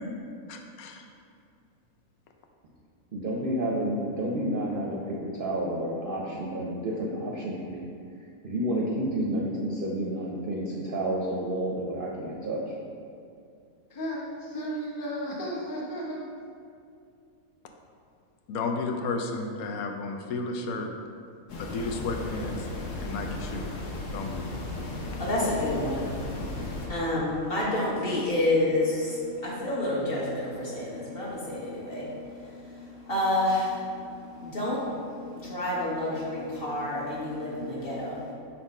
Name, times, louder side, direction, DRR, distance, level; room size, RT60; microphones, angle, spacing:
voice 1, 0.5-1.0 18.5-20.9 21.6-22.7 23.0-23.7 24.1-24.5, left 3 dB, 85° left, 3 dB, 1.1 m, -32 dB
voice 2, 3.1-7.9 8.4-12.7, right 1 dB, 55° right, -3 dB, 0.6 m, -30 dB
voice 3, 13.9-16.2, equal, 20° left, -4 dB, 0.6 m, -34 dB
sound 1, 21.5-26.9, left 2 dB, 65° left, 1.2 m, -35 dB
voice 4, 24.9-26.4 26.9-32.4 32.7-33.8 34.3-38.3, left 1 dB, 45° left, -7 dB, 1.5 m, -29 dB
4.3 x 4.3 x 5.3 m, 2.4 s
omnidirectional pair, 1.5 m